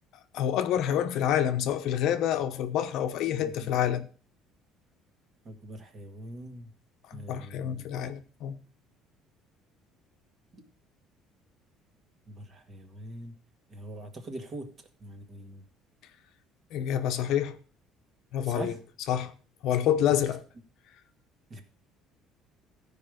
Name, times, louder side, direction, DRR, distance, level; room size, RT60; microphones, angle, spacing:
voice 1, 0.3-4.1 7.1-8.6 16.7-17.6 18.3-18.7 19.1-19.3 19.6-20.4, left 10 dB, 55° left, 0.9 m, -27 dB
voice 2, 3.3-3.7 5.4-6.7 7.1-7.9 10.5-10.6 12.3-13.3 13.7-15.6 18.4-18.8 20.1-20.3 21.5-21.6, right 1 dB, 25° right, 1.7 m, -43 dB
14.0 x 5.2 x 6.4 m
cardioid pair, 165°, 0 cm